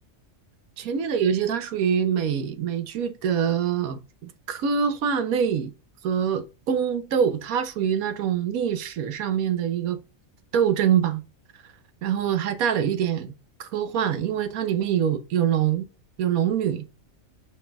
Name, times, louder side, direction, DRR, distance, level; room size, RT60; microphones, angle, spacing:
voice 1, 0.8-5.7 6.0-10.0 10.5-11.2 12.0-13.3 13.6-15.9 16.2-16.8, right 8 dB, 90° right, 1.2 m, -24 dB
5.6 x 4.3 x 2.2 m
omnidirectional pair, 1.4 m